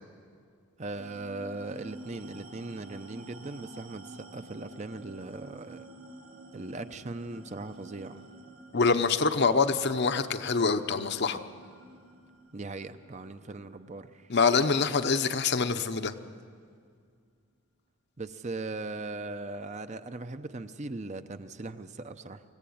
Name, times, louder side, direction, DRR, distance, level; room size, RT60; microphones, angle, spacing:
voice 1, 0.8-5.9 6.5-8.2 12.5-14.3 18.2-22.4, right 2 dB, 35° right, 10 dB, 0.6 m, -39 dB
sound 1, 1.0-15.8, right 2 dB, 80° right, 3.3 m, -50 dB
voice 2, 8.7-11.4 14.3-16.1, left 4 dB, 50° left, 9 dB, 0.8 m, -25 dB
25.5 x 15.0 x 8.6 m, 2.2 s
head